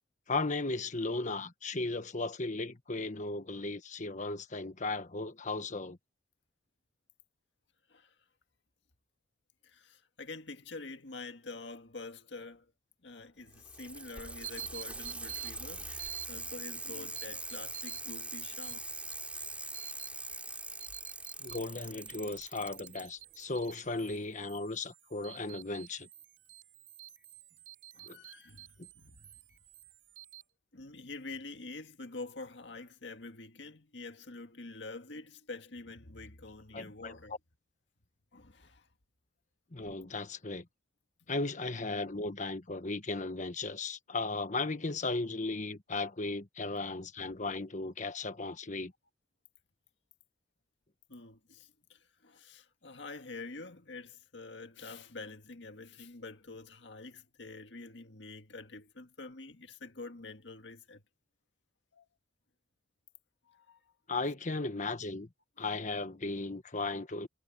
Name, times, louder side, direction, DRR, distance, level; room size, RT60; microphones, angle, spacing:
voice 1, 0.3-6.0 16.9-17.1 21.4-26.1 28.1-28.2 36.7-37.2 39.7-40.6 41.3-48.9 64.1-65.3 65.6-67.3, left 3 dB, 45° left, 1.4 m, -36 dB
voice 2, 9.6-12.7 13.0-18.8 27.9-28.7 28.9-29.4 30.7-37.3 38.3-38.9 51.1-61.0 61.9-62.1 63.5-63.9, left 3 dB, 70° left, 1.9 m, -47 dB
Bicycle, 13.4-23.0 24.1-24.2, right 2 dB, 5° right, 4.2 m, -42 dB
sound 1, 14.4-30.4, right 13 dB, 90° right, 4.0 m, -50 dB
head